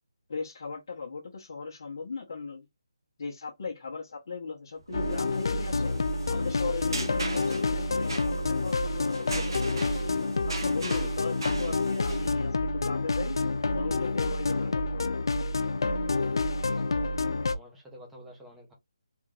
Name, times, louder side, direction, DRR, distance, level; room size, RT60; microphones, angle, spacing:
voice 1, 0.3-2.7 3.2-5.9 6.3-10.0 10.5-13.4 13.7-15.1, left 4 dB, 40° left, 0.9 m, -38 dB
sound 1, 4.8-12.3, right 2 dB, 60° right, 1.0 m, -39 dB
sound 2, 4.9-17.6, left 3 dB, 60° left, 0.4 m, -28 dB
voice 2, 16.7-18.7, equal, 5° right, 0.5 m, -50 dB
3.5 x 2.5 x 3.1 m
hypercardioid pair, 175°, 3 cm